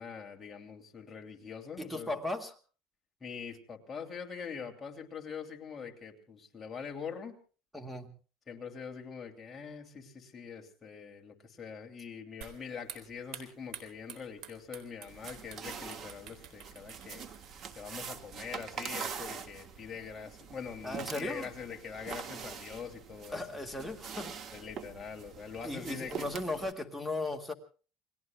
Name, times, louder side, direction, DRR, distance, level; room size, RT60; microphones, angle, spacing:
voice 1, 0.0-2.1 3.2-7.4 8.5-17.3 17.7-23.6 24.5-26.3, left 6 dB, 20° left, 1 dB, 2.8 m, -43 dB
voice 2, 1.8-2.5 7.7-8.1 20.8-21.5 23.3-24.3 25.6-27.5, left 2 dB, ahead, 7 dB, 2.0 m, -36 dB
sound 1, 12.4-19.0, right 8 dB, 60° right, 4.1 m, -51 dB
sound 2, 15.1-26.7, right 6 dB, 40° right, 1.8 m, -44 dB
29.5 x 21.5 x 2.3 m, 0.38 s
cardioid pair, 150°, 0 cm